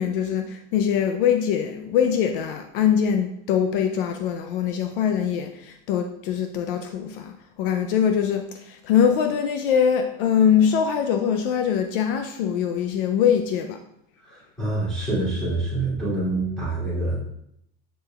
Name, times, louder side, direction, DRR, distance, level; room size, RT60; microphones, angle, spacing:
voice 1, 0.0-13.8, left 8 dB, 60° left, 6 dB, 0.5 m, -23 dB
voice 2, 14.2-17.2, right 2 dB, ahead, -10 dB, 2.6 m, -26 dB
7.5 x 6.7 x 2.3 m, 0.77 s
supercardioid pair, 175°, 31 cm